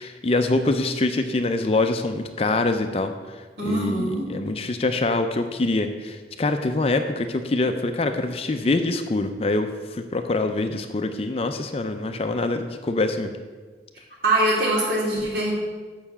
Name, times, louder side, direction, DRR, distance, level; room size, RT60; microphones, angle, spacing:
voice 1, 0.0-13.3, left 2 dB, 35° left, 7 dB, 0.4 m, -25 dB
voice 2, 3.6-4.3 14.2-15.5, right 1 dB, 60° right, -4 dB, 2.5 m, -23 dB
6.8 x 5.5 x 7.1 m, 1.4 s
head